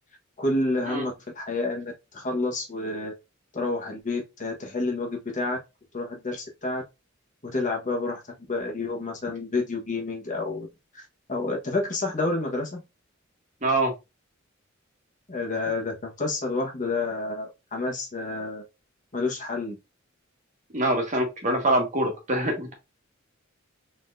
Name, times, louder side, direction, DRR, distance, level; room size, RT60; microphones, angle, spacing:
voice 1, 0.4-3.1 3.5-5.6 5.9-6.8 7.4-8.2 8.5-10.7 10.9-12.8 15.3-18.6 19.1-19.8, left 2 dB, 40° left, 1.3 m, -29 dB
voice 2, 13.6-13.9 20.7-22.7, right 1 dB, 40° right, 1.5 m, -24 dB
4.0 x 3.9 x 2.6 m
head